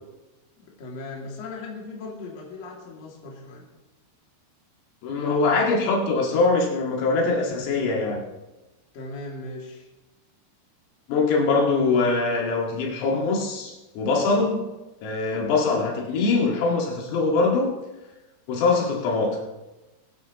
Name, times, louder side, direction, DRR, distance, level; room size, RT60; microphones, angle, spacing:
voice 1, 0.6-3.7 8.9-9.9, left 3 dB, 40° left, -3 dB, 2.9 m, -38 dB
voice 2, 5.0-8.2 11.1-14.7 15.0-17.8 18.5-19.4, left 3 dB, 80° left, -2 dB, 4.7 m, -23 dB
23.5 x 9.8 x 3.1 m, 1.1 s
omnidirectional pair, 6.0 m